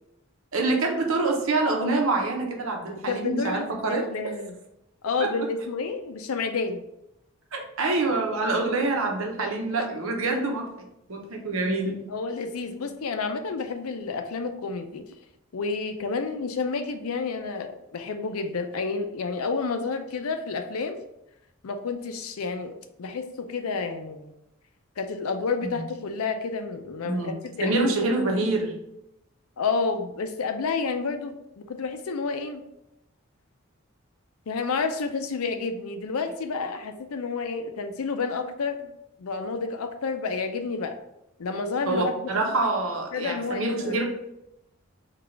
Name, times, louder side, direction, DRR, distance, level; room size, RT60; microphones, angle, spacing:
voice 1, 0.5-4.1 5.2-5.3 7.5-12.1 25.6-25.7 27.0-27.3 27.6-28.7 41.9-44.1, right 2 dB, 75° right, 2 dB, 0.8 m, -26 dB
voice 2, 3.1-4.6 5.0-6.8 9.8-9.9 12.1-15.0 15.5-21.0 21.6-24.3 25.0-27.8 29.6-32.6 34.5-38.9 39.2-41.0 41.4-42.6 43.1-44.0, left 4 dB, 90° left, 7 dB, 0.5 m, -30 dB
3.9 x 2.4 x 4.4 m, 0.85 s
head